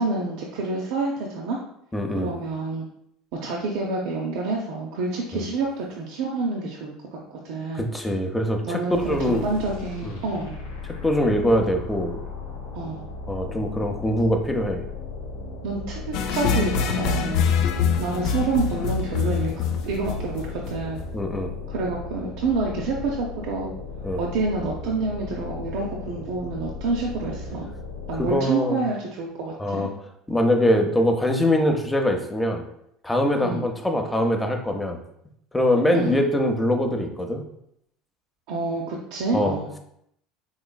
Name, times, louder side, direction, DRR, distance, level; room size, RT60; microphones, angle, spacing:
voice 1, 0.0-1.6 2.2-2.9 3.4-7.9 8.6-10.6 12.7-13.1 15.6-17.4 18.0-21.0 21.7-23.7 24.2-27.7 28.1-29.9 33.4-33.7 35.9-36.2 38.5-39.7, right 3 dB, 70° right, -2 dB, 0.5 m, -28 dB
voice 2, 1.9-2.3 5.3-5.4 7.7-8.8 9.1-9.5 10.0-10.1 11.0-12.2 13.3-14.8 17.6-17.8 21.1-21.5 24.0-24.2 28.2-28.8 29.6-29.9 30.3-32.6 33.0-35.0 35.5-37.4 39.3-39.6, left 1 dB, 10° left, 4 dB, 0.6 m, -23 dB
sound 1, 8.9-28.5, left 4 dB, 90° left, 0.7 m, -36 dB
sound 2, 16.1-21.1, left 6 dB, 65° left, 0.3 m, -25 dB
3.8 x 3.0 x 2.2 m, 0.73 s
hypercardioid pair, 80°, 0 cm